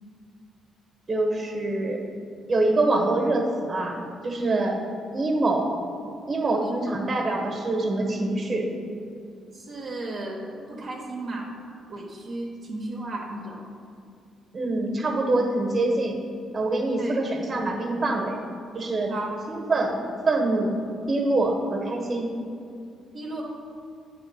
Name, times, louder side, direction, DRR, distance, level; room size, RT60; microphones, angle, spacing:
voice 1, 1.1-2.0 2.5-4.8 5.1-5.7 6.3-8.7 14.5-16.2 16.5-18.4 18.7-19.1 19.5-20.0 20.2-20.8 21.1-22.3, right 2 dB, 35° right, 2 dB, 1.1 m, -25 dB
voice 2, 9.5-10.4 10.7-11.5 11.9-13.6 17.0-17.2 19.1-19.3 23.1-23.4, right 2 dB, 50° right, -3 dB, 0.9 m, -34 dB
8.1 x 3.7 x 5.3 m, 2.4 s
cardioid pair, 90°, 0 cm